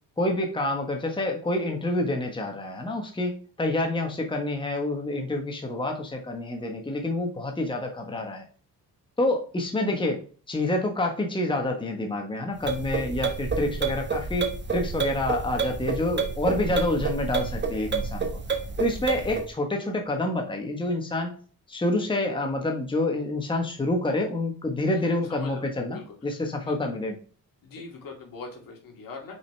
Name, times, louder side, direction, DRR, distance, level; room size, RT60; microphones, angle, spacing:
voice 1, 0.2-8.5 9.2-18.3 18.8-21.3 21.7-27.1, left 2 dB, 15° left, 2 dB, 1.3 m, -28 dB
sound 1, 12.6-19.5, right 4 dB, 30° right, 1.1 m, -29 dB
voice 2, 24.9-26.2 26.6-27.0 27.6-29.4, left 3 dB, 65° left, 1 dB, 2.4 m, -42 dB
5.6 x 5.1 x 3.4 m, 0.40 s
cardioid pair, 100°, 36 cm